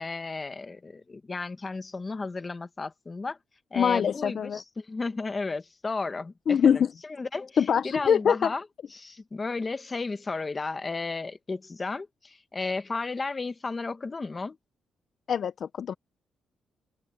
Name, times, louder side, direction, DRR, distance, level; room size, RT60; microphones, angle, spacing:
voice 1, 0.0-3.4 3.7-6.8 7.2-7.6 7.8-8.6 8.9-14.6, left 3 dB, 20° left, 1.2 m, -33 dB
voice 2, 3.8-4.6 6.5-6.9 7.6-8.5 15.3-15.9, left 7 dB, 50° left, 0.4 m, -23 dB
wide cardioid pair, 165°, 0 cm